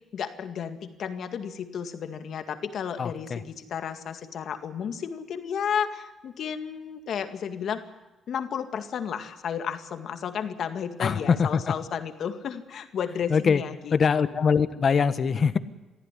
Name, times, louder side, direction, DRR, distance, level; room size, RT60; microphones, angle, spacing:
voice 1, 0.1-7.8 8.3-14.2, left 7 dB, 65° left, 7 dB, 2.0 m, -32 dB
voice 2, 3.0-3.4 11.0-11.7 13.3-13.6 13.9-15.6, left 6 dB, 50° left, 12 dB, 1.3 m, -23 dB
23.0 x 14.5 x 10.0 m, 1.1 s
cardioid pair, 90°, 0 cm